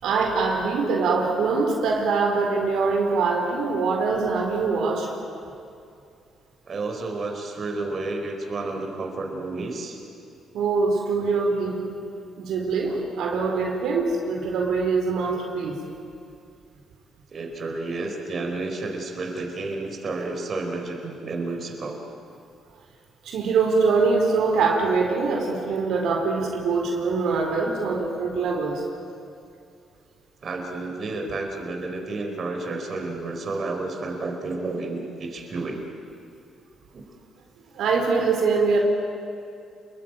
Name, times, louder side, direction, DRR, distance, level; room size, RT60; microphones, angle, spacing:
voice 1, 0.0-5.1 10.5-11.8 12.4-15.7 23.2-28.8 37.7-38.8, right 4 dB, 80° right, 1 dB, 4.3 m, -23 dB
voice 2, 6.7-10.0 12.9-13.0 17.3-22.0 30.4-35.8 36.9-37.0, right 3 dB, 45° right, 2 dB, 4.4 m, -31 dB
29.0 x 22.0 x 9.0 m, 2.5 s
cardioid pair, 90°, 0 cm